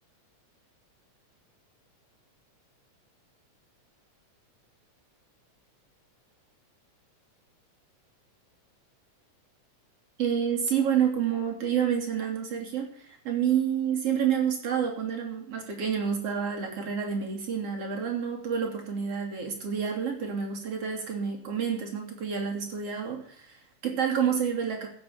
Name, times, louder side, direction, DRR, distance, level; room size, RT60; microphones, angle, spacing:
voice 1, 10.2-24.9, right 8 dB, 55° right, 1 dB, 4.0 m, -29 dB
15.0 x 7.5 x 7.4 m, 0.63 s
omnidirectional pair, 3.4 m